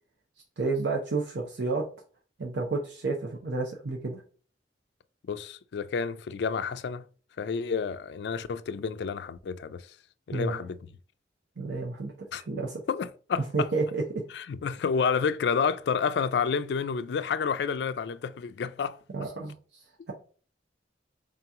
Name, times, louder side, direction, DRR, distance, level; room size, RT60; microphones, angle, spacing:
voice 1, 0.6-1.8 2.4-4.2 10.3-10.7 11.6-12.8 13.5-14.2 19.1-20.1, right 3 dB, 90° right, 0.7 m, -31 dB
voice 2, 5.3-7.0 7.4-9.9 10.3-10.9 12.3-12.4 12.9-13.7 14.3-19.0, left 6 dB, 70° left, 0.3 m, -30 dB
3.7 x 2.9 x 3.5 m
head